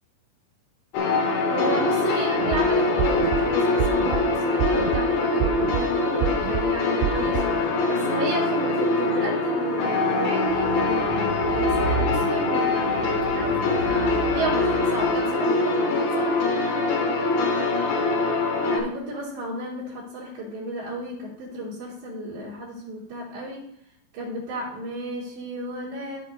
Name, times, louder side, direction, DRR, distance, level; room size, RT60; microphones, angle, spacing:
sound 1, 0.9-18.8, left 3 dB, 85° left, 3.7 m, -23 dB
voice 1, 1.5-16.4 18.7-23.6 24.1-26.2, right 1 dB, 65° right, -8 dB, 4.1 m, -33 dB
sound 2, 2.4-2.6 3.0-3.4 3.8-4.2 4.6-5.0 5.4-5.8 6.2-6.6 7.0-7.4, right 13 dB, 85° right, 2.7 m, -26 dB
sound 3, 10.4-15.2, right 2 dB, 45° left, 2.9 m, -32 dB
14.5 x 6.7 x 2.7 m, 0.70 s
omnidirectional pair, 4.9 m